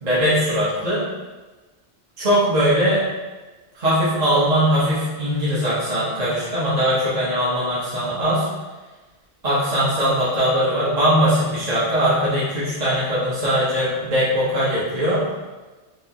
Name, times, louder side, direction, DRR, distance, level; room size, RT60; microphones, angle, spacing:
voice 1, 0.0-1.0 2.2-3.0 3.7-8.5 9.4-15.2, equal, 40° right, -9 dB, 0.8 m, -20 dB
4.5 x 2.0 x 2.7 m, 1.2 s
omnidirectional pair, 1.1 m